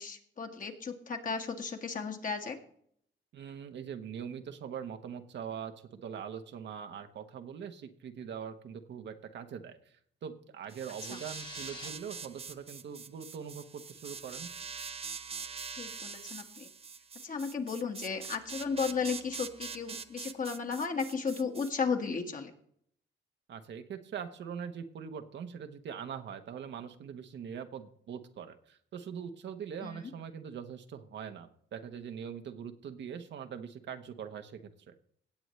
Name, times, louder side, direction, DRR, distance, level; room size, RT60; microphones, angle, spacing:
voice 1, 0.0-2.6 11.1-11.2 15.8-16.7 17.2-22.5 29.8-30.1, left 5 dB, 40° left, 4 dB, 1.7 m, -34 dB
voice 2, 3.3-9.9 10.2-14.5 23.5-34.7, right 7 dB, 65° right, 7 dB, 1.1 m, -42 dB
sound 1, 10.7-11.9, left 2 dB, 20° left, 1.5 m, -48 dB
sound 2, 10.7-21.7, right 5 dB, 30° right, 0.7 m, -44 dB
17.5 x 7.9 x 3.2 m, 0.64 s
cardioid pair, 90°, 20 cm